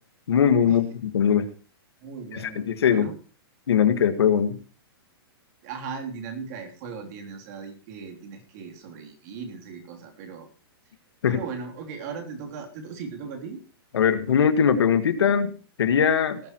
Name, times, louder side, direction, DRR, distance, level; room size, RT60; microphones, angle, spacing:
voice 1, 0.3-1.4 2.3-3.1 3.7-4.6 11.2-11.4 13.9-16.4, left 7 dB, 85° left, 9 dB, 1.8 m, -21 dB
voice 2, 2.0-3.1 5.6-10.5 11.3-13.6, right 5 dB, 40° right, 3 dB, 3.3 m, -38 dB
18.5 x 11.0 x 3.1 m, 0.38 s
hypercardioid pair, 155°, 13 cm